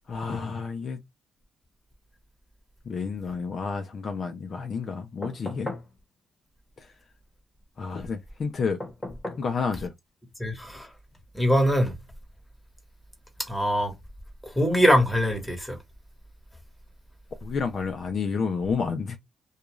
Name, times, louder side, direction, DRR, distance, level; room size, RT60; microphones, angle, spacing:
voice 1, 0.1-1.0 2.9-5.7 6.8-6.9 7.8-8.8 9.4-9.9 17.4-19.2, left 5 dB, 50° left, 0.5 m, -30 dB
sound 1, 5.2-5.9 8.8-9.5 11.1-11.2, left 1 dB, 25° left, 1.3 m, -37 dB
voice 2, 10.4-10.9 11.3-11.9 13.5-13.9 14.5-15.8, equal, 5° left, 1.2 m, -22 dB
2.3 x 2.3 x 3.0 m
cardioid pair, 90°, 0 cm